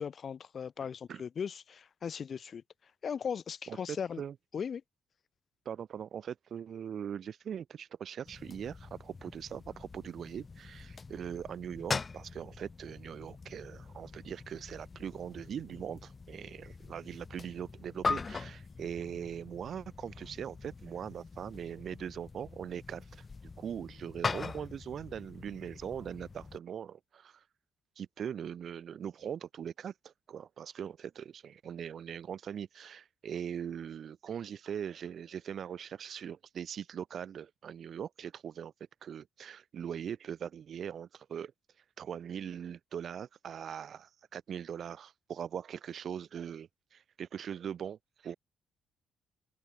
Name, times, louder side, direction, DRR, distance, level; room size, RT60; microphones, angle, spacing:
voice 1, 0.0-2.6 3.0-4.2 4.5-4.8, left 7 dB, 50° left, 0.6 m, -38 dB
voice 2, 3.7-4.3 5.7-23.2 23.6-27.4 28.0-38.7 39.0-41.5 42.0-48.4, right 8 dB, 60° right, 0.7 m, -41 dB
sound 1, 8.2-26.6, left 4 dB, 30° left, 1.7 m, -42 dB
cardioid pair, 90°, 0 cm